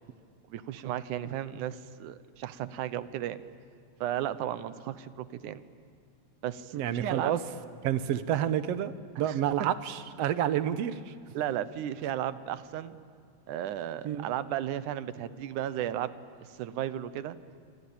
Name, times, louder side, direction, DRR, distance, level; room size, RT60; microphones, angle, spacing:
voice 1, 0.5-3.4 4.0-5.6 6.4-7.3 9.2-9.7 11.3-13.0 13.5-16.1 16.4-17.4, right 11 dB, 80° right, 14 dB, 2.4 m, -34 dB
voice 2, 6.7-7.4 7.8-11.1 14.0-14.3, right 10 dB, 65° right, 12 dB, 1.8 m, -29 dB
27.0 x 25.0 x 8.7 m, 2.4 s
omnidirectional pair, 3.5 m